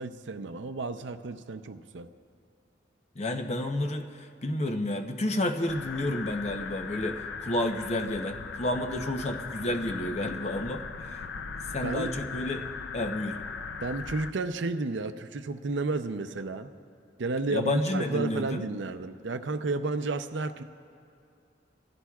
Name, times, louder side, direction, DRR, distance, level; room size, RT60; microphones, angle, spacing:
voice 1, 0.0-2.1 11.8-12.1 13.8-16.7 17.2-20.6, right 3 dB, 80° right, 9 dB, 0.6 m, -32 dB
voice 2, 3.2-11.2 11.7-12.6 12.9-13.4 17.5-18.7, left 1 dB, 40° left, 5 dB, 0.8 m, -30 dB
sound 1, 5.7-14.3, left 5 dB, 90° left, 0.6 m, -38 dB
25.0 x 16.0 x 2.4 m, 2.6 s
head